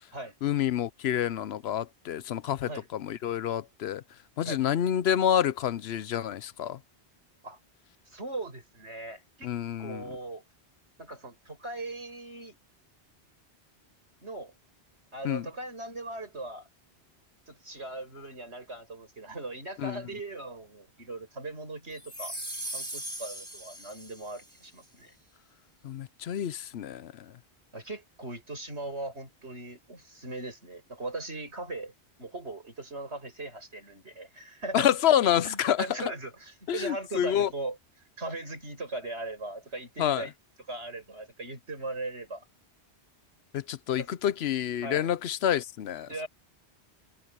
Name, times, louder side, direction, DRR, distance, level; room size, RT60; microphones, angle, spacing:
voice 1, 0.4-4.0 4.4-6.8 9.4-10.1 15.2-15.5 19.8-20.0 25.8-27.3 34.7-36.1 36.7-37.5 40.0-40.3 43.5-46.2, left 10 dB, 70° left, 0.9 m, -28 dB
voice 2, 8.0-9.5 9.8-10.4 11.0-12.6 14.2-14.5 15.1-16.7 17.5-22.4 22.7-25.1 27.7-31.9 32.2-34.9 35.4-37.8 38.2-40.3 40.7-42.5 44.0-44.1 44.8-45.1 46.1-46.3, right 2 dB, 80° right, 6.8 m, -39 dB
sound 1, 22.0-24.5, right 1 dB, 35° right, 5.6 m, -39 dB
omnidirectional pair, 1.1 m